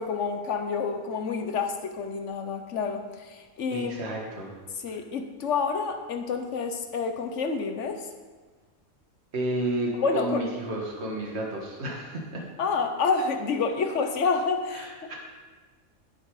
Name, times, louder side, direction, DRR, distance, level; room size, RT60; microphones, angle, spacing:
voice 1, 0.0-3.9 4.8-8.1 10.0-10.5 12.6-15.1, left 5 dB, 65° left, 6 dB, 1.3 m, -28 dB
voice 2, 3.7-4.5 4.9-5.0 9.3-12.4 14.7-15.1, right 1 dB, 55° right, -1 dB, 2.0 m, -32 dB
11.0 x 8.8 x 4.9 m, 1.4 s
omnidirectional pair, 1.4 m